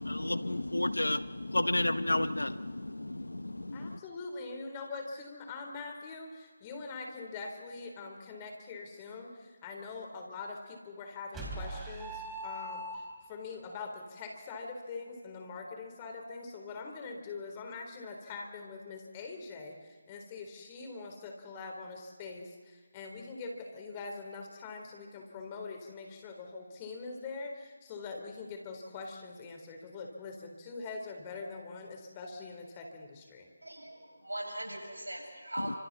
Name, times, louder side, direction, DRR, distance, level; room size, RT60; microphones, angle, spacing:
voice 1, 0.0-4.0 35.6-35.8, left 1 dB, 85° left, 13 dB, 1.1 m, -32 dB
voice 2, 3.7-33.5, left 4 dB, 25° left, 2 dB, 3.9 m, -43 dB
sound 1, 11.3-13.4, right 1 dB, 10° right, 4.7 m, -40 dB
voice 3, 33.6-35.8, right 1 dB, 85° right, 1 dB, 6.6 m, -40 dB
29.5 x 26.5 x 4.2 m, 1.5 s
figure-of-eight pair, 155°, 0 cm